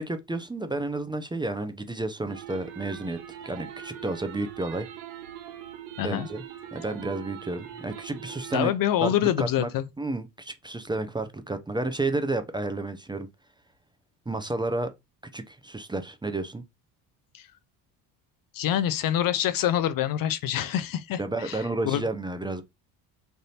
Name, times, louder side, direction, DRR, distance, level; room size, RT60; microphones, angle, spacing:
voice 1, 0.0-3.2 3.4-4.9 6.0-6.4 6.7-8.7 9.0-9.7 10.0-13.3 14.3-14.9 15.3-16.6 21.2-22.6, right 2 dB, 10° right, 0.5 m, -31 dB
sound 1, 2.3-8.7, right 11 dB, 90° right, 0.9 m, -42 dB
voice 2, 6.0-6.3 8.5-9.8 17.3-17.5 18.5-22.0, left 11 dB, 55° left, 0.5 m, -26 dB
3.3 x 2.6 x 4.1 m
supercardioid pair, 85°, 41 cm